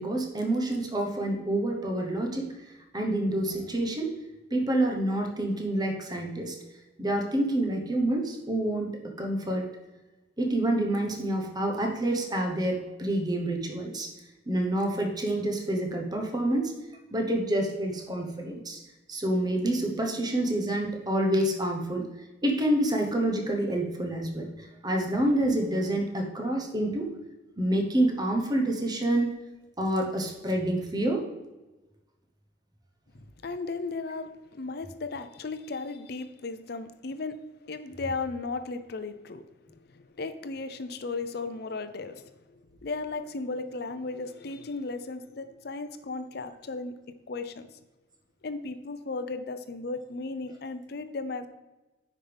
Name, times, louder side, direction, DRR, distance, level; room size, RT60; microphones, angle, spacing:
voice 1, 0.0-2.5 2.9-4.1 4.5-6.6 7.0-9.7 10.4-14.1 14.5-16.7 17.1-18.8 19.1-22.1 22.4-24.5 24.8-27.1 27.6-29.3 29.8-31.2, right 1 dB, 20° right, 2 dB, 1.0 m, -27 dB
voice 2, 33.1-37.4 37.7-39.5 39.9-46.9 47.3-47.7 48.4-51.5, left 3 dB, 55° left, 10 dB, 0.6 m, -35 dB
9.5 x 5.2 x 3.4 m, 1.1 s
head